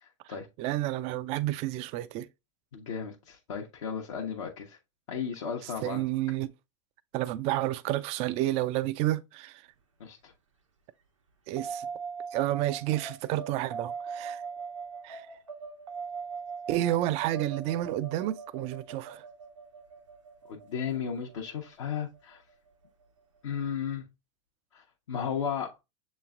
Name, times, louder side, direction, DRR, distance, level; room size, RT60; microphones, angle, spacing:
voice 1, 0.0-0.5 2.7-4.8 5.1-6.0 10.0-10.3 20.5-22.4 23.4-24.1 24.7-25.7, left 7 dB, 70° left, 0.8 m, -35 dB
voice 2, 0.6-2.3 5.8-6.5 7.1-9.6 11.5-11.9 12.3-14.4 15.0-15.3 16.7-19.2, right 15 dB, 40° right, 0.4 m, -30 dB
sound 1, 11.6-22.3, right 5 dB, 85° right, 1.0 m, -41 dB
6.8 x 3.1 x 2.3 m
hypercardioid pair, 95°, 16 cm